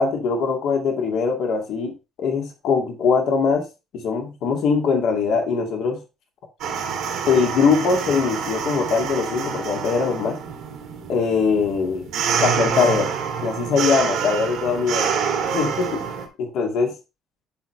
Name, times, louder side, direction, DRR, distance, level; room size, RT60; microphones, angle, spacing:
voice 1, 0.0-3.7 4.0-6.0 7.3-10.4 11.1-12.0 12.4-13.1 13.4-15.1 15.5-16.1 16.4-16.9, left 5 dB, 65° left, 2.1 m, -21 dB
sound 1, 6.6-16.3, right 7 dB, 70° right, 2.4 m, -27 dB
11.0 x 4.4 x 3.2 m
supercardioid pair, 65°, 0 cm